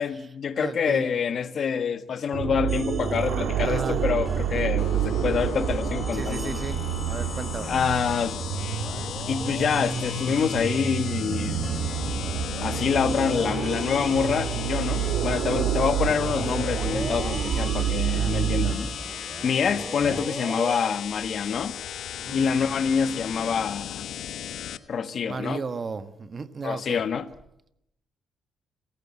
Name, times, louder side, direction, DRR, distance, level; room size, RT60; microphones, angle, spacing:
voice 1, 0.0-6.6 7.7-8.4 9.3-11.6 12.6-19.0 19.4-21.7 22.3-24.0 24.9-25.6 26.6-27.3, left 6 dB, 55° left, 1.4 m, -26 dB
voice 2, 0.6-1.1 3.6-4.1 6.1-7.8 18.1-18.3 22.2-22.4 25.2-27.0, right 4 dB, 35° right, 1.6 m, -34 dB
sound 1, 2.3-18.7, right 8 dB, 70° right, 2.7 m, -28 dB
sound 2, 2.7-20.8, right 2 dB, 20° right, 2.7 m, -40 dB
sound 3, 4.8-24.8, left 10 dB, 75° left, 1.2 m, -36 dB
29.5 x 14.5 x 8.7 m
cardioid pair, 90°, 0 cm